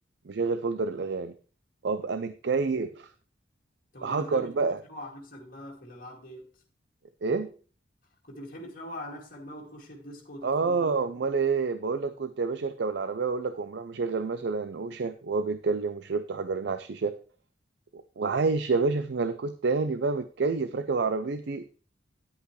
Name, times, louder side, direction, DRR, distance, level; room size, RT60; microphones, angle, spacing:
voice 1, 0.3-1.3 1.8-2.9 4.0-4.8 7.2-7.5 10.4-17.1 17.9-21.8, right 4 dB, 65° right, 0.5 m, -28 dB
voice 2, 3.9-6.6 8.2-11.0, left 1 dB, 50° left, 2.3 m, -43 dB
10.5 x 8.2 x 3.2 m
head